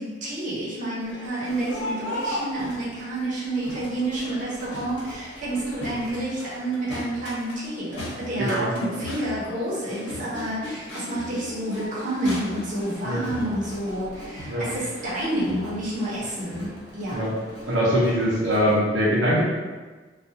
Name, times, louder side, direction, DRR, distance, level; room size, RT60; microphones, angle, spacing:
voice 1, 0.0-17.3, right 1 dB, 45° right, -8 dB, 0.8 m, -29 dB
Crowd, 1.0-18.7, left 1 dB, 90° left, 1.2 m, -38 dB
voice 2, 8.4-8.7 13.0-13.3 14.5-14.7 17.1-17.3 17.7-19.4, equal, 85° right, -7 dB, 0.7 m, -22 dB
2.4 x 2.3 x 2.7 m, 1.4 s
head